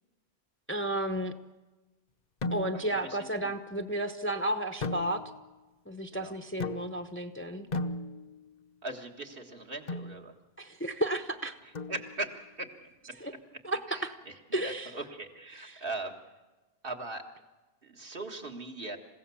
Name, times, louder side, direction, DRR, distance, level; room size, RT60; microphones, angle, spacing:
voice 1, 0.7-1.3 2.5-5.2 5.9-7.7 10.6-11.5 13.2-13.3 13.6-14.1 14.5-15.0 15.6-15.8, right 1 dB, 10° left, 7 dB, 0.8 m, -32 dB
sound 1, 2.4-3.0 4.8-5.5 6.6-7.2 7.7-8.5 9.9-10.2 11.7-12.4, left 2 dB, 45° left, 0.9 m, -36 dB
voice 2, 2.7-3.3 6.1-6.3 8.8-10.3 11.9-12.7 13.9-14.3 14.6-16.2 16.8-17.2 17.8-19.0, right 2 dB, 60° right, 2 dB, 2.0 m, -39 dB
28.0 x 16.0 x 7.0 m, 1.2 s
omnidirectional pair, 1.1 m